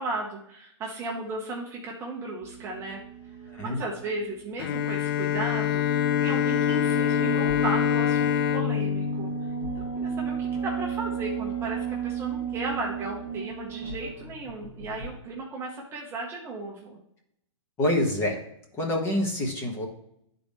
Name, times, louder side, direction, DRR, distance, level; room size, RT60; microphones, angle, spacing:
voice 1, 0.0-3.0 3.6-5.8 6.2-9.3 9.7-17.0, right 2 dB, 15° right, -2 dB, 0.9 m, -35 dB
sound 1, 2.4-15.2, right 7 dB, 65° left, 1.8 m, -34 dB
Bowed string instrument, 4.6-10.3, left 11 dB, 45° left, 0.4 m, -26 dB
voice 2, 17.8-18.4 18.7-19.9, left 1 dB, 15° left, 1 dB, 1.2 m, -26 dB
11.0 x 4.0 x 3.5 m, 0.73 s
hypercardioid pair, 160°, 16 cm